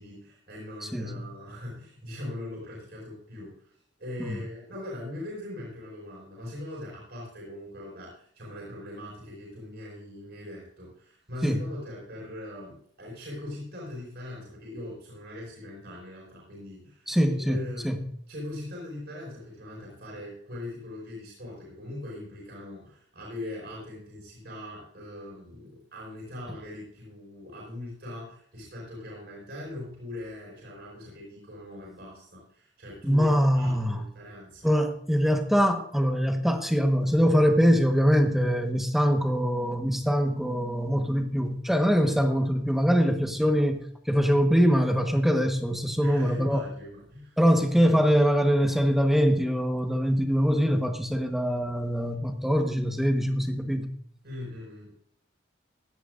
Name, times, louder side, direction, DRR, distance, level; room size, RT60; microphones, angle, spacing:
voice 1, 0.0-3.7 4.0-17.1 17.5-17.9 18.3-34.8 46.0-47.4 54.2-54.9, left 1 dB, 60° right, -4 dB, 5.7 m, -41 dB
voice 2, 0.9-1.2 4.2-4.4 11.4-11.6 17.1-18.0 33.0-34.0 34.6-46.6 47.4-53.9, equal, ahead, 5 dB, 1.2 m, -23 dB
16.5 x 12.5 x 2.6 m, 0.64 s
head